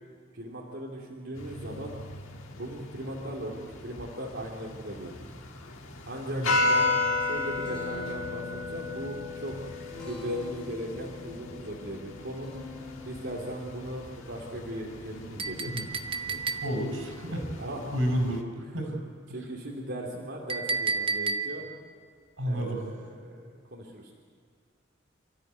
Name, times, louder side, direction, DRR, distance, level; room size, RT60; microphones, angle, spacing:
voice 1, 0.3-2.0 2.5-5.3 6.0-6.9 7.2-9.5 10.0-12.5 13.0-15.8 16.3-16.4 17.6-17.8 19.3-21.7 22.4-24.1, equal, 60° right, -4 dB, 2.7 m, -38 dB
sound 1, 1.3-18.4, left 2 dB, 85° left, 2.2 m, -35 dB
Guitar, 7.1-16.9, left 2 dB, 5° left, 5.0 m, -47 dB
Chink clink, 15.4-17.0 20.5-21.8, right 4 dB, 25° right, 0.9 m, -31 dB
voice 2, 16.6-17.5 17.9-19.0 19.3-19.4 22.4-22.8, equal, 85° right, 2 dB, 5.7 m, -30 dB
28.5 x 13.5 x 9.4 m, 2.1 s
head